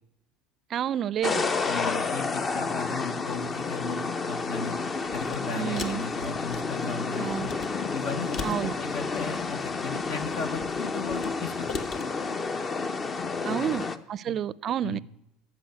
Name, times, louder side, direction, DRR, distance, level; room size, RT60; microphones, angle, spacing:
voice 1, 0.7-1.4 5.5-6.0 7.2-7.5 8.4-8.8 13.4-15.0, right 10 dB, 45° right, 0.5 m, -30 dB
sound 1, 1.2-14.0, left 4 dB, 30° left, 0.8 m, -30 dB
voice 2, 1.7-4.8 5.1-7.5 7.9-11.9 13.5-13.9 14.3-14.4 14.8-15.0, left 4 dB, 65° left, 1.4 m, -36 dB
sound 2, 5.1-5.4 5.8-6.9 7.3-7.7 8.3-9.5 10.0-11.3 11.7-12.1, left 4 dB, 50° left, 1.6 m, -39 dB
14.0 x 6.1 x 9.5 m
supercardioid pair, 95°, 0 cm